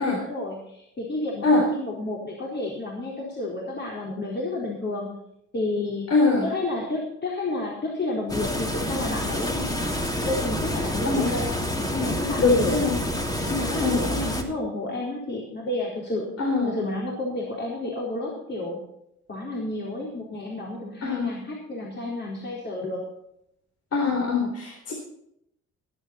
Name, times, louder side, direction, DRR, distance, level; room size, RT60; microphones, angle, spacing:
voice 1, 0.0-5.2 5.5-6.1 6.4-10.0 10.2-11.5 11.9-12.8 13.5-16.3 16.7-18.8 19.3-23.0, left 2 dB, 35° left, -3 dB, 4.2 m, -31 dB
voice 2, 6.1-6.5 11.0-11.3 12.4-12.9 13.8-14.0 16.4-16.7 21.0-21.3 23.9-24.9, left 3 dB, 50° left, 0 dB, 3.9 m, -22 dB
sound 1, 8.3-14.4, left 1 dB, 10° left, 2.7 m, -28 dB
21.0 x 8.7 x 4.3 m, 0.75 s
cardioid pair, 90°, 30 cm